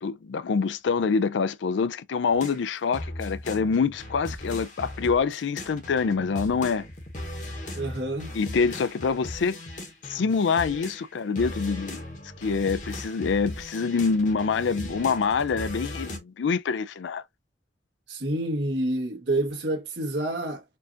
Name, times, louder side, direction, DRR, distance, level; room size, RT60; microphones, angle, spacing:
voice 1, 0.0-6.9 8.3-9.6 10.1-12.0 12.4-17.2, left 5 dB, 85° left, 0.4 m, -26 dB
sound 1, 2.3-11.1 11.4-16.2, left 1 dB, 45° left, 1.1 m, -38 dB
voice 2, 7.7-8.3 18.1-20.6, right 1 dB, 75° right, 1.3 m, -28 dB
4.5 x 2.5 x 2.7 m
head